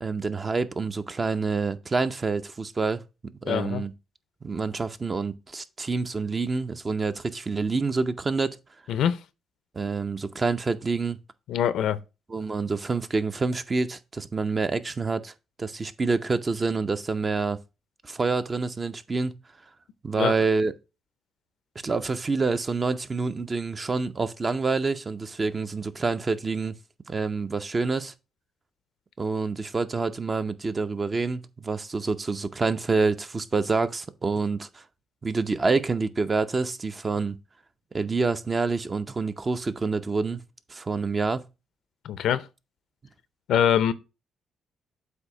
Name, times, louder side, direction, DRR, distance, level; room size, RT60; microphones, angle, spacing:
voice 1, 0.0-3.0 3.4-3.9 4.4-8.6 9.7-11.2 12.3-15.3 15.6-17.6 18.0-19.3 20.0-20.7 21.8-26.7 27.1-28.1 29.2-34.8 35.2-37.4 37.9-40.4 40.7-41.4, right 4 dB, 30° right, 0.6 m, -27 dB
voice 2, 3.5-3.8 8.9-9.2 11.5-12.0 20.2-20.3 42.0-42.5 43.5-43.9, left 9 dB, 75° left, 0.6 m, -23 dB
8.0 x 2.8 x 6.0 m
cardioid pair, 90°, 0 cm